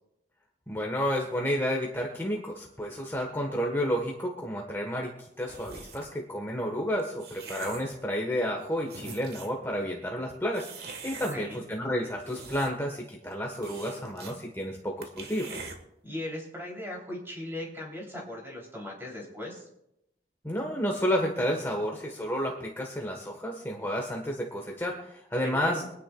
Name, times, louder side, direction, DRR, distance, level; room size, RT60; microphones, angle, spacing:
voice 1, 0.7-5.1 5.4-15.6 20.4-25.8, equal, 15° left, 0 dB, 1.3 m, -31 dB
sound 1, 5.5-6.2 6.8-8.0 8.5-8.6 8.8-9.6 10.5-11.4 12.0-12.9 13.2-13.3 13.6-14.4 14.7-14.8 15.0-15.8, right 4 dB, 60° right, 1.5 m, -42 dB
voice 2, 11.3-11.6 16.0-19.6 25.4-25.9, left 1 dB, 15° right, -2 dB, 3.2 m, -38 dB
25.0 x 9.8 x 2.3 m, 0.81 s
head